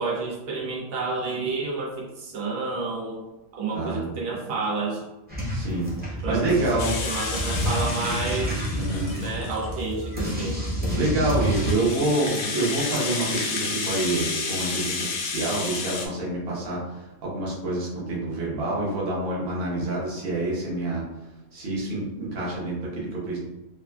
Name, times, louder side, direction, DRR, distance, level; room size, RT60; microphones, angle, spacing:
voice 1, 0.0-3.2 3.5-5.0 6.2-8.9 9.2-10.6, right 3 dB, 85° right, -3 dB, 1.1 m, -30 dB
voice 2, 3.7-4.1 5.5-7.0 8.8-9.2 10.9-21.0 21.5-23.4, right 2 dB, 50° right, -5 dB, 1.0 m, -27 dB
sound 1, 5.3-11.7, equal, 10° right, 0.4 m, -29 dB
Rattle (instrument), 6.8-9.8 10.3-16.1, left 4 dB, 65° left, 0.8 m, -31 dB
3.2 x 2.3 x 2.2 m, 1.0 s
omnidirectional pair, 1.4 m